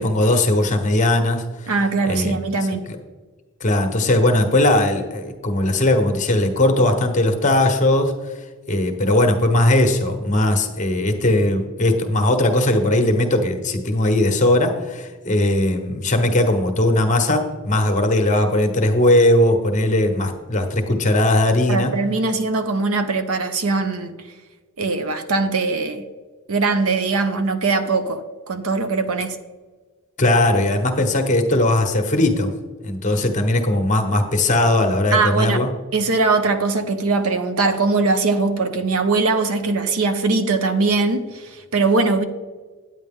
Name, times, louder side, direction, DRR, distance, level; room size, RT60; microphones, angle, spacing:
voice 1, 0.0-1.4 2.1-2.4 2.9-3.0 3.6-8.1 8.7-21.9 30.2-32.5 32.8-35.7, left 1 dB, 35° left, 5 dB, 1.0 m, -18 dB
voice 2, 1.7-2.9 21.7-24.1 24.8-26.0 26.5-28.2 28.5-29.4 35.1-42.2, right 3 dB, 80° right, 9 dB, 0.8 m, -21 dB
9.2 x 9.2 x 3.7 m, 1.4 s
head